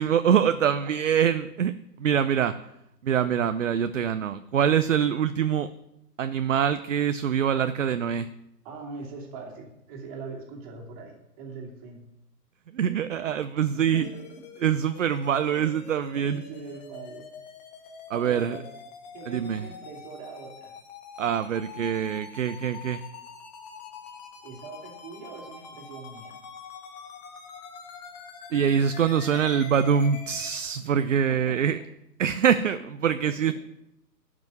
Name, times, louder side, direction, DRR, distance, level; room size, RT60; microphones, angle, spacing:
voice 1, 0.0-1.7 2.0-2.6 3.0-5.7 6.2-8.3 12.7-14.1 14.6-16.4 18.1-18.6 19.3-19.6 21.2-23.0 28.5-31.8 32.2-33.5, right 8 dB, 50° right, 11 dB, 0.6 m, -24 dB
voice 2, 8.6-12.0 13.7-14.2 16.2-17.3 18.1-18.7 19.1-20.7 24.4-26.4 28.5-28.6 31.3-31.6 33.2-33.4, right 4 dB, 20° right, -1 dB, 2.5 m, -42 dB
sound 1, 14.0-30.6, left 6 dB, 25° left, 1.3 m, -45 dB
12.0 x 6.1 x 9.4 m, 0.82 s
hypercardioid pair, 150°, 49 cm